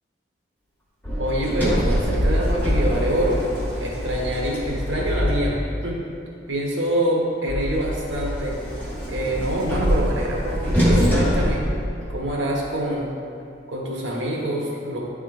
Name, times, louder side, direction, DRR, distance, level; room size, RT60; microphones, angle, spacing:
Sliding door, 1.0-5.9 7.5-12.4, equal, 10° left, 1.3 m, -24 dB
voice 1, 1.2-3.4 3.8-6.0 6.5-8.6 9.1-11.6 12.1-13.1 13.7-15.1, right 1 dB, 75° right, -2 dB, 1.3 m, -25 dB
10.0 x 3.7 x 3.7 m, 2.5 s
head